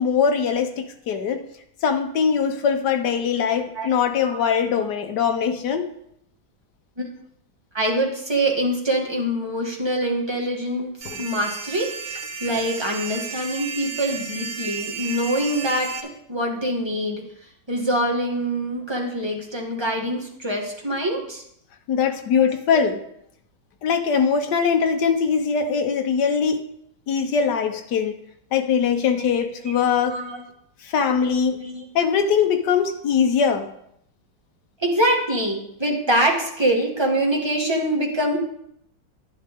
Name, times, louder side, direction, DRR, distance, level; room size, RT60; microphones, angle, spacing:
voice 1, 0.0-1.4 1.8-5.9 11.0-11.2 21.9-23.0 23.8-26.6 27.1-28.1 28.5-30.2 30.8-31.6 31.9-33.7, left 6 dB, 65° left, 6 dB, 1.5 m, -21 dB
voice 2, 7.7-17.2 17.7-21.4 22.3-22.8 29.6-29.7 30.1-30.4 31.5-31.8 34.8-38.4, right 1 dB, 15° right, 0 dB, 1.4 m, -24 dB
sound 1, 11.0-16.0, right 5 dB, 85° right, 1.9 m, -33 dB
11.0 x 10.0 x 3.5 m, 0.72 s
omnidirectional pair, 2.1 m